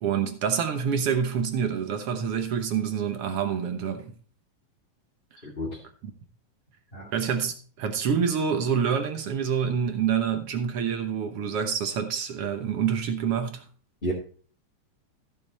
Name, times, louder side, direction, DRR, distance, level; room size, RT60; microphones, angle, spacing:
voice 1, 0.0-4.1 7.1-13.6, right 7 dB, 60° right, 1.8 m, -27 dB
voice 2, 5.4-5.8 6.9-7.1 14.0-14.1, equal, 15° left, 2.6 m, -31 dB
14.5 x 7.0 x 4.1 m
omnidirectional pair, 3.5 m